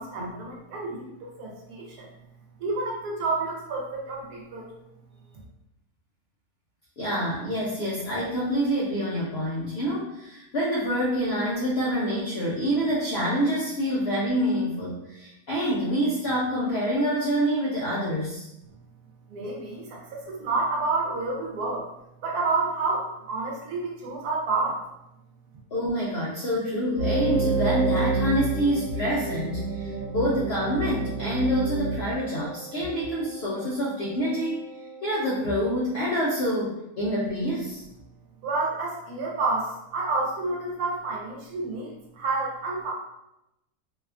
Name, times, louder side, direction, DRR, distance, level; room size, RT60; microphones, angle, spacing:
voice 1, 0.0-2.1 2.6-4.7 19.3-21.8 22.2-24.8 38.4-42.9, right 3 dB, 85° right, -1 dB, 1.2 m, -29 dB
voice 2, 7.0-18.5 25.7-34.6 35.0-37.8, equal, 70° left, -6 dB, 0.6 m, -27 dB
sound 1, 27.0-32.0, right 3 dB, 45° right, 1.3 m, -28 dB
Wind instrument woodwind instrument, 27.9-36.1, right 4 dB, 5° left, 0.7 m, -45 dB
2.8 x 2.3 x 2.3 m, 0.89 s
omnidirectional pair, 1.6 m